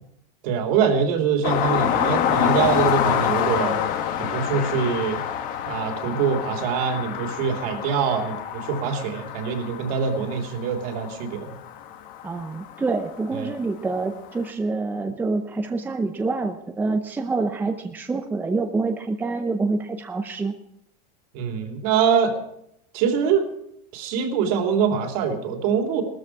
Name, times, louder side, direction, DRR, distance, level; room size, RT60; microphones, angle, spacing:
voice 1, 0.4-3.8 4.2-5.2 5.6-11.5 13.3-13.5 21.3-22.4 22.9-23.4 23.9-26.0, right 6 dB, 60° right, 4 dB, 3.2 m, -24 dB
sound 1, 1.4-12.9 14.4-14.5, left 9 dB, 40° left, 1.5 m, -26 dB
voice 2, 12.2-20.5, right 3 dB, 10° right, 5 dB, 0.7 m, -26 dB
18.5 x 13.5 x 4.8 m, 0.76 s
supercardioid pair, 155°, 21 cm